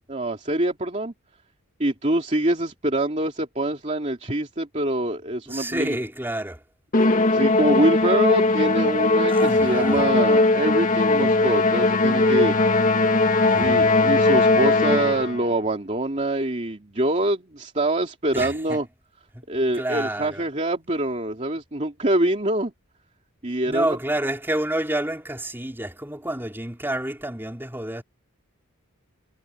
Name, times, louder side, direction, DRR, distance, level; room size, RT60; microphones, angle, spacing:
voice 1, 0.1-1.1 1.8-6.0 7.3-12.6 13.6-18.9 19.5-22.7 23.4-23.9, right 1 dB, 30° right, 2.7 m, -25 dB
voice 2, 5.5-6.6 9.3-10.0 13.4-13.9 18.3-18.8 19.3-19.4 19.7-20.4 23.7-28.0, right 1 dB, 10° right, 4.5 m, -29 dB
Musical instrument, 6.9-15.4, left 2 dB, 35° left, 1.4 m, -19 dB
head